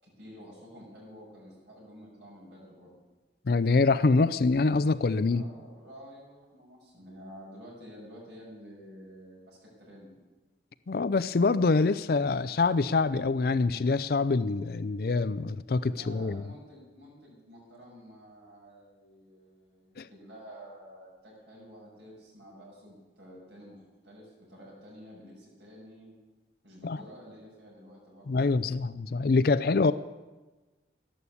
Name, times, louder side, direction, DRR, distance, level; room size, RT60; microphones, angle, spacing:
voice 1, 0.0-3.0 5.3-10.2 15.8-26.1 26.6-28.8, equal, 80° right, -5 dB, 6.8 m, -50 dB
voice 2, 3.5-5.4 10.9-16.4 20.0-20.1 26.8-27.0 28.3-29.9, left 3 dB, 55° left, 13 dB, 0.5 m, -25 dB
12.5 x 11.5 x 8.4 m, 1.2 s
head